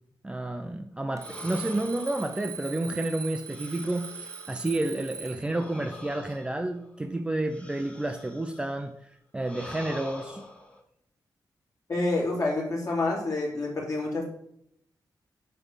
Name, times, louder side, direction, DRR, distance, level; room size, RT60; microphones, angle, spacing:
voice 1, 0.2-10.5, right 2 dB, 15° right, 6 dB, 0.5 m, -31 dB
sound 1, 1.1-4.8 5.4-8.8 9.4-10.8, left 1 dB, 15° left, 0.9 m, -46 dB
Alarm, 1.2-5.6, right 5 dB, 50° right, 0.9 m, -41 dB
voice 2, 11.9-14.2, left 2 dB, 45° left, -3 dB, 2.7 m, -28 dB
8.7 x 3.3 x 6.7 m, 0.72 s
wide cardioid pair, 140°, 8 cm